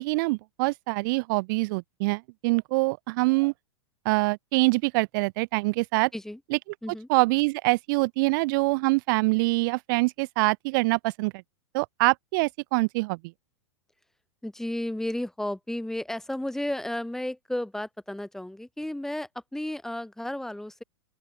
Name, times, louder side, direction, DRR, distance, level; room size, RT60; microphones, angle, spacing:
voice 1, 0.0-3.5 4.1-6.1 7.1-11.3 11.7-13.2, right 26 dB, 40° right, 0.4 m, -24 dB
voice 2, 14.4-20.8, left 1 dB, 5° left, 3.2 m, -33 dB
open air
figure-of-eight pair, 100°, 16 cm